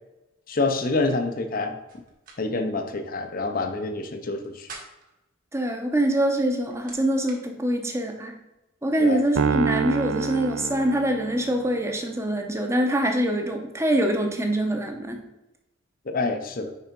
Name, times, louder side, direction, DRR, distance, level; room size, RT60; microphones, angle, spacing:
voice 1, 0.5-1.8 2.4-4.7 9.0-9.2 16.1-16.7, left 3 dB, 45° left, 6 dB, 0.7 m, -27 dB
sound 1, 1.9-2.4 2.7-2.8 4.3-5.2 6.3-7.4, right 3 dB, 45° right, 1.4 m, -45 dB
voice 2, 5.5-8.4 8.8-15.2, right 1 dB, 15° right, 3 dB, 0.8 m, -24 dB
Piano, 9.4-11.8, right 5 dB, 85° right, 0.5 m, -27 dB
5.4 x 4.8 x 5.2 m, 0.97 s
head